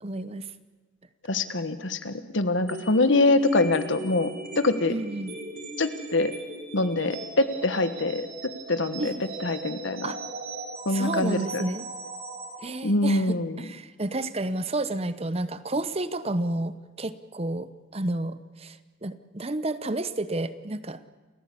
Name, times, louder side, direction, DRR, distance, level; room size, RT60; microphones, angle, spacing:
voice 1, 0.0-0.5 4.9-5.4 9.0-9.1 10.0-10.2 10.9-11.9 12.6-21.0, right 2 dB, 30° right, 14 dB, 0.9 m, -31 dB
voice 2, 1.3-4.3 4.6-5.0 5.8-6.3 6.7-9.1 9.4-10.1 10.8-11.6 12.8-13.7, left 2 dB, 75° left, 11 dB, 1.4 m, -24 dB
sound 1, 2.7-12.6, right 2 dB, 45° right, 4.9 m, -39 dB
28.5 x 15.5 x 8.6 m, 1.3 s
head